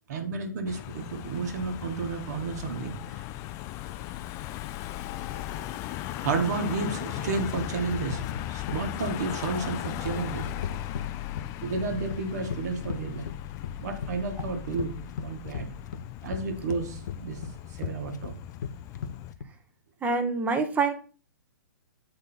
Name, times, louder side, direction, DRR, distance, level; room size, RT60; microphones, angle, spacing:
voice 1, 0.1-3.0 6.2-10.5 11.6-13.3 13.8-15.7 16.2-17.4 17.8-18.3, right 4 dB, 55° right, 6 dB, 1.4 m, -32 dB
Car passing by / Engine, 0.7-19.3, left 14 dB, 30° left, 0.4 m, -37 dB
sound 1, 6.5-19.4, left 7 dB, 65° left, 0.8 m, -38 dB
voice 2, 20.0-20.9, right 4 dB, 15° right, 7 dB, 0.9 m, -25 dB
7.9 x 3.7 x 4.1 m, 0.39 s
hypercardioid pair, 125°, 10 cm